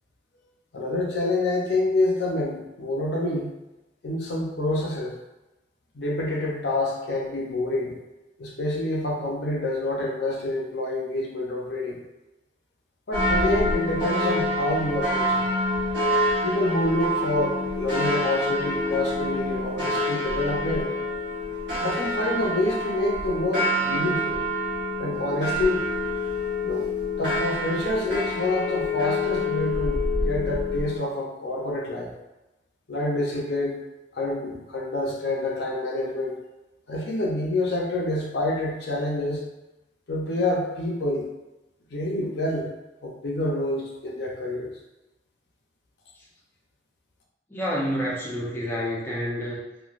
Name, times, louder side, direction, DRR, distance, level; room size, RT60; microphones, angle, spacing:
voice 1, 0.7-3.5 4.0-5.2 5.9-7.9 8.4-12.0 13.1-15.4 16.4-20.9 21.8-24.4 25.0-25.8 26.6-26.9 27.2-32.1 32.9-33.8 34.1-36.4 36.9-39.4 40.1-41.3 41.9-42.7 43.0-44.7, left 2 dB, 65° left, -2 dB, 0.5 m, -27 dB
sound 1, 13.1-31.0, left 1 dB, 75° right, 1.1 m, -27 dB
voice 2, 47.5-49.6, equal, 10° left, -6 dB, 0.4 m, -28 dB
3.1 x 2.3 x 2.4 m, 1.0 s
head